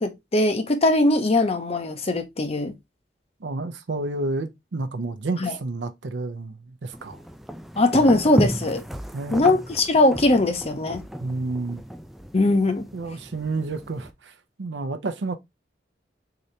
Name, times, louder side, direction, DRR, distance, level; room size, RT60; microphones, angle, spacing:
voice 1, 0.0-2.7 5.4-5.5 7.8-8.8 9.3-11.0 12.3-12.9, left 2 dB, 35° left, 0.7 m, -20 dB
voice 2, 3.4-7.2 9.1-9.5 11.2-11.8 12.9-15.3, right 3 dB, 85° right, 0.6 m, -30 dB
sound 1, 6.9-14.1, equal, ahead, 0.3 m, -33 dB
3.9 x 2.8 x 3.1 m
head